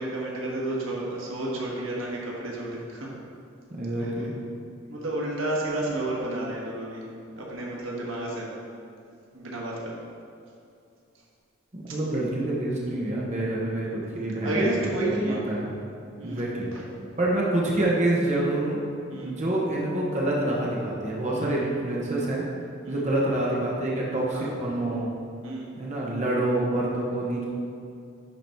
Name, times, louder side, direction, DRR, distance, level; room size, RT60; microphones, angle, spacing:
voice 1, 0.0-3.1 4.9-7.0 7.4-8.5 9.3-9.9 14.4-15.4 16.2-16.4 19.1-19.4 21.3-21.5 22.8-23.0 24.3-24.5 25.4-25.7, right 1 dB, 85° right, -3 dB, 1.6 m, -30 dB
voice 2, 3.7-4.3 11.7-15.7 16.2-16.7 17.2-18.8 19.2-22.4 22.9-25.1 25.8-27.4, right 1 dB, 35° right, -4 dB, 1.1 m, -27 dB
11.0 x 4.0 x 4.5 m, 2.5 s
head